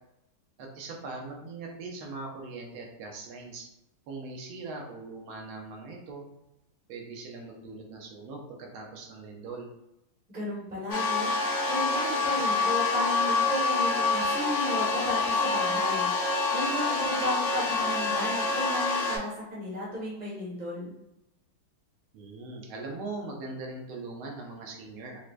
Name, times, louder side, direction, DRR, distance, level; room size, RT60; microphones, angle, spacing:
voice 1, 0.6-3.6 4.1-6.2 6.9-9.7 22.1-25.2, right 3 dB, 85° right, 0 dB, 1.6 m, -40 dB
voice 2, 10.3-11.3 11.6-16.1 16.5-20.9, left 1 dB, 10° right, -6 dB, 0.5 m, -34 dB
sound 1, 10.9-19.2, left 3 dB, 85° left, 0.6 m, -27 dB
4.6 x 2.1 x 2.5 m, 0.87 s
omnidirectional pair, 2.2 m